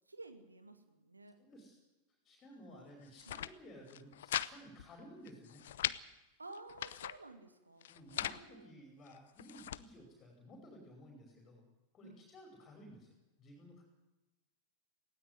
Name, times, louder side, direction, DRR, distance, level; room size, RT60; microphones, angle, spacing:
voice 1, 0.1-1.4 2.6-2.9 3.3-3.4 6.4-7.9 8.1-8.8 12.0-12.3, right 2 dB, 80° right, 8 dB, 2.3 m, -53 dB
voice 2, 1.4-1.8 2.2-5.6 7.9-11.6 11.9-13.1 13.4-13.8, equal, 25° left, 2 dB, 5.2 m, -55 dB
sound 1, 3.0-3.5 3.9-4.5 4.8-4.9 5.3-6.0 6.5-7.2 7.8-8.4 9.1-9.8, left 12 dB, 60° left, 0.8 m, -39 dB
18.5 x 17.0 x 9.6 m, 1.0 s
figure-of-eight pair, 90°, 0 cm